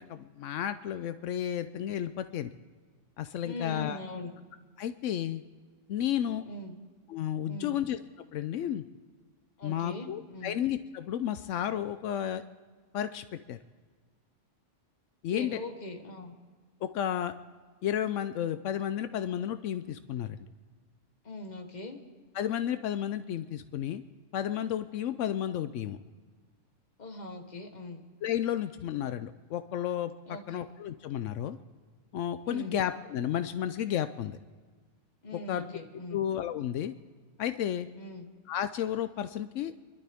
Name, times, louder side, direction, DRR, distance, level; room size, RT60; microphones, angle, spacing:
voice 1, 0.0-2.5 3.2-4.0 4.8-5.4 5.9-6.4 7.1-8.0 8.3-8.8 9.6-12.4 12.9-13.6 15.2-15.6 16.8-17.3 17.8-20.4 22.3-24.0 24.3-26.0 28.2-30.1 30.5-31.6 32.1-34.4 35.3-35.6 36.1-36.9 37.4-37.9 38.5-39.7, left 10 dB, 80° left, 11 dB, 0.9 m, -32 dB
voice 2, 3.4-4.3 6.5-6.8 7.5-7.8 9.6-10.6 15.3-16.3 21.2-22.0 27.0-28.0 30.3-30.6 32.4-32.8 35.2-36.3 37.9-38.3, left 2 dB, 35° left, 4 dB, 1.5 m, -41 dB
26.5 x 12.0 x 3.5 m, 1.5 s
omnidirectional pair, 1.3 m